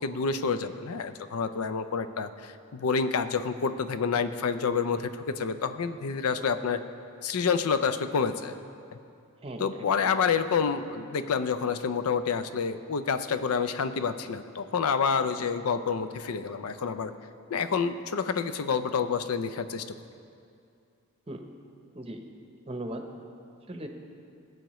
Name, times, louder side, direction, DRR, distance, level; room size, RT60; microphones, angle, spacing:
voice 1, 0.0-6.8 7.2-8.6 9.6-17.1 17.5-20.0, left 5 dB, 90° left, 11 dB, 0.5 m, -28 dB
voice 2, 9.4-10.1 21.3-21.4 21.9-22.2 22.7-23.0 23.7-23.9, right 1 dB, 25° right, 4 dB, 0.7 m, -38 dB
18.5 x 7.8 x 3.1 m, 2.5 s
head